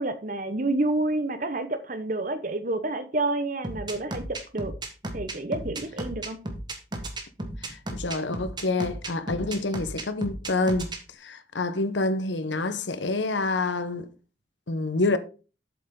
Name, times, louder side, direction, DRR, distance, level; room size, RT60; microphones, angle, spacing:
voice 1, 0.0-4.7 5.1-6.4, right 2 dB, 45° right, 1.0 m, -29 dB
sound 1, 3.6-11.0, right 1 dB, 25° right, 1.4 m, -34 dB
voice 2, 7.6-14.1 14.7-15.2, left 2 dB, 85° left, 0.9 m, -27 dB
8.0 x 7.8 x 3.7 m
head